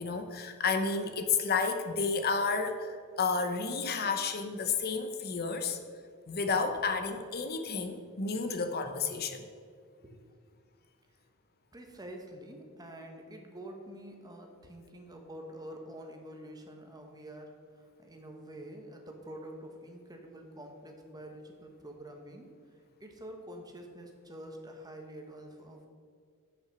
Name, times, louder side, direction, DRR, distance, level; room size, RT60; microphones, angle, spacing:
voice 1, 0.0-5.8 6.3-9.4, left 4 dB, 50° left, 6 dB, 0.8 m, -31 dB
voice 2, 11.7-17.5 17.8-22.5 23.0-25.9, right 1 dB, 20° right, 2 dB, 1.2 m, -47 dB
9.7 x 5.8 x 6.1 m, 2.1 s
head